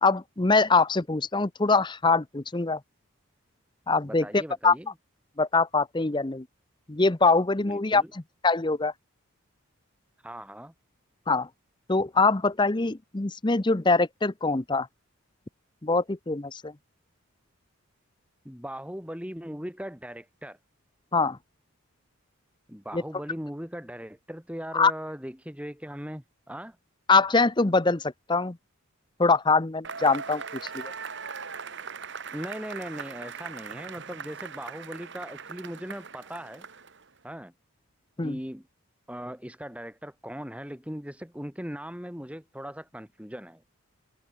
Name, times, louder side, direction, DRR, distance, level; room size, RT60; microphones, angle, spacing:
voice 1, 0.0-2.8 3.9-4.7 5.4-6.5 6.9-8.0 8.4-8.9 11.3-11.5 11.9-14.9 15.8-16.7 21.1-21.4 22.9-23.0 24.7-24.9 27.1-28.6 29.2-30.4 30.7-30.9 38.2-38.4, left 3 dB, 20° left, 0.7 m, -23 dB
voice 2, 4.1-4.9 7.6-8.1 10.2-10.7 18.4-20.6 22.7-26.8 32.3-36.6 37.2-37.5 38.2-38.7 39.1-43.6, equal, 5° right, 3.2 m, -39 dB
Cheering / Applause / Crowd, 29.8-37.1, right 6 dB, 55° right, 1.8 m, -40 dB
head